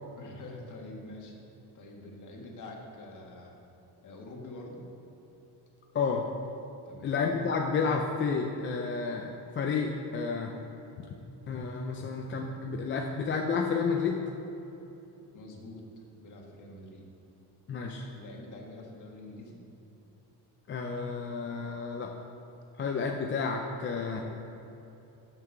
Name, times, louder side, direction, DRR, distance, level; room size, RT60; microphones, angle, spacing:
voice 1, 0.2-1.3 1.7-3.6 4.0-4.8 6.8-7.1 15.3-17.1 18.1-19.6, left 2 dB, 45° left, -1 dB, 1.7 m, -46 dB
voice 2, 5.9-6.3 7.0-10.5 11.5-14.2 17.7-18.1 20.7-22.1 22.8-24.2, left 5 dB, 30° left, 1 dB, 0.5 m, -31 dB
7.5 x 6.0 x 6.6 m, 2.9 s
cardioid pair, 140°, 41 cm